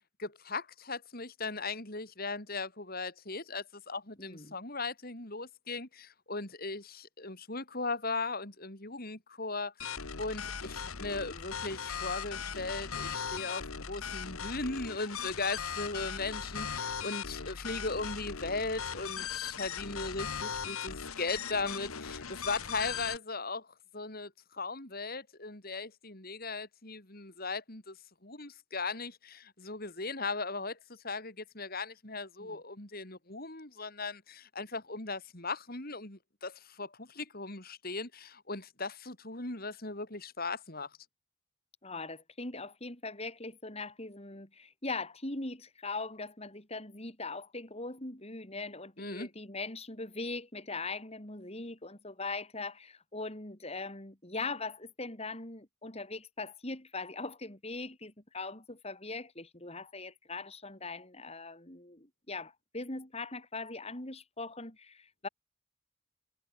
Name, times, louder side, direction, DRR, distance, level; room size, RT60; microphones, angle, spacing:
voice 1, 0.0-9.7 10.2-23.7 23.9-28.0 28.2-40.9 49.0-49.3, left 3 dB, 45° left, 4.1 m, -38 dB
voice 2, 4.2-4.5 32.4-32.6 41.8-65.3, left 3 dB, 30° left, 3.3 m, -41 dB
sound 1, 9.8-23.2, left 6 dB, 90° left, 1.6 m, -39 dB
head